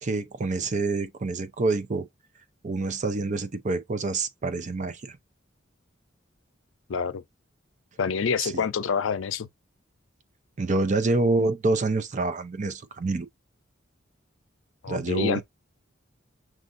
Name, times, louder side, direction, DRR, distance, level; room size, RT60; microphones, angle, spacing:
voice 1, 0.0-2.1 2.6-5.2 8.4-8.6 10.6-13.3 14.9-15.4, right 3 dB, 40° right, 0.5 m, -27 dB
voice 2, 6.9-7.2 8.0-9.5 14.8-15.4, left 6 dB, 85° left, 0.5 m, -27 dB
6.1 x 2.5 x 2.5 m
head